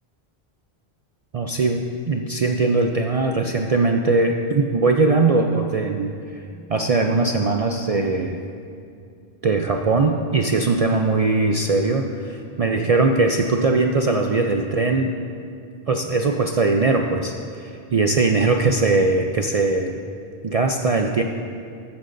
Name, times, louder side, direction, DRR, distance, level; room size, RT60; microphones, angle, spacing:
voice 1, 1.3-6.4 6.7-8.4 9.4-15.2 15.9-20.0 20.4-21.2, right 3 dB, 50° right, 3 dB, 0.4 m, -20 dB
14.0 x 11.5 x 2.6 m, 2.5 s
omnidirectional pair, 1.1 m